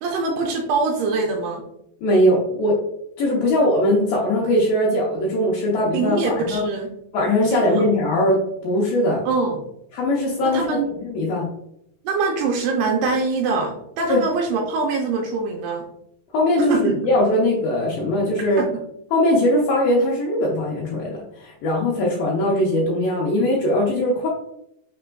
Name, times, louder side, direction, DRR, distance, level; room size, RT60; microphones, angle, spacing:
voice 1, 0.0-1.7 5.9-6.9 7.5-7.8 9.3-9.6 10.4-10.9 12.0-15.9 16.7-17.0 18.6-18.8, right 4 dB, 85° right, 1 dB, 2.3 m, -23 dB
voice 2, 2.0-2.8 3.2-6.6 7.1-9.2 9.9-10.7 11.0-11.5 14.1-14.2 16.3-18.6 19.1-24.3, left 1 dB, 90° left, -4 dB, 2.0 m, -20 dB
6.5 x 3.4 x 2.2 m, 0.77 s
omnidirectional pair, 5.2 m